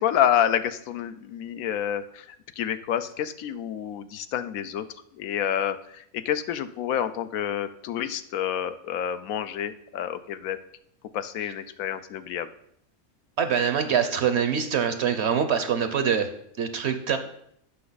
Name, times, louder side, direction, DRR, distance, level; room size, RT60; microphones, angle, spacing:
voice 1, 0.0-2.3 2.6-4.9 5.2-10.6 11.1-12.5, left 9 dB, 80° left, 11 dB, 1.0 m, -28 dB
voice 2, 13.4-16.3 16.6-17.2, right 7 dB, 60° right, 9 dB, 0.8 m, -24 dB
8.4 x 5.9 x 4.0 m, 0.70 s
omnidirectional pair, 1.5 m